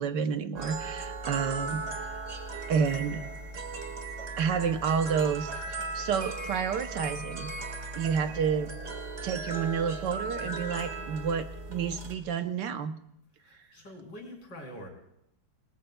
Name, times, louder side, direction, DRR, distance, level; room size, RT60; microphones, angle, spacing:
voice 1, 0.0-1.8 2.7-3.2 4.4-5.7 5.9-7.5 8.0-8.7 9.2-12.9, right 6 dB, 70° right, 9 dB, 1.3 m, -29 dB
sound 1, 0.6-12.2, right 3 dB, 40° right, 2.0 m, -37 dB
voice 2, 13.4-14.9, equal, 70° left, 1 dB, 4.1 m, -45 dB
27.0 x 19.5 x 2.2 m, 0.77 s
omnidirectional pair, 2.0 m